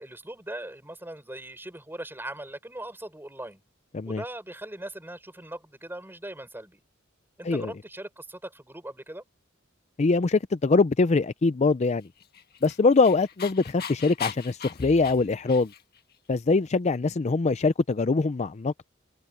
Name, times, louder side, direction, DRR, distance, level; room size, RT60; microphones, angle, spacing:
voice 1, 0.0-3.6 4.1-6.8 7.4-9.2, right 1 dB, 10° right, 6.0 m, -40 dB
voice 2, 10.0-12.1 12.6-15.7 16.3-18.7, left 3 dB, 35° left, 0.5 m, -23 dB
Dog, 12.2-16.0, left 7 dB, 50° left, 1.6 m, -39 dB
head